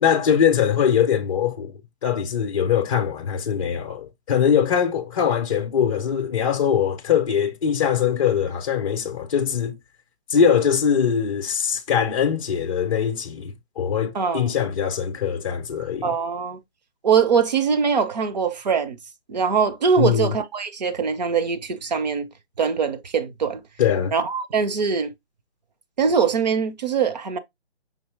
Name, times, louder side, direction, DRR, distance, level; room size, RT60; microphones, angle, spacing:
voice 1, 0.0-1.7 2.0-9.8 10.3-16.1 20.0-20.3 23.8-24.1, left 8 dB, 30° left, 0.6 m, -22 dB
voice 2, 14.1-14.5 16.0-16.6 17.0-19.0 19.3-22.3 22.6-23.6 24.1-25.1 26.0-27.4, right 6 dB, 40° right, 0.7 m, -22 dB
5.2 x 2.8 x 3.3 m
figure-of-eight pair, 145°, 33 cm